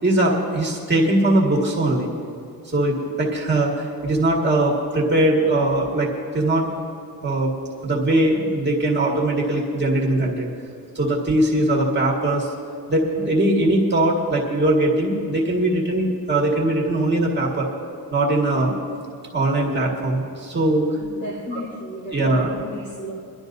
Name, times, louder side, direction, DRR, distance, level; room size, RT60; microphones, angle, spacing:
voice 1, 0.0-2.1 2.7-6.1 6.3-6.7 7.2-7.5 7.8-10.5 11.0-12.5 12.9-17.7 18.1-18.8 19.3-20.9 21.5-21.6 22.1-22.5, right 1 dB, 30° right, 1.9 m, -20 dB
voice 2, 21.0-23.1, left 1 dB, 30° left, 2.7 m, -34 dB
23.5 x 12.0 x 2.7 m
wide cardioid pair, 145°, 36 cm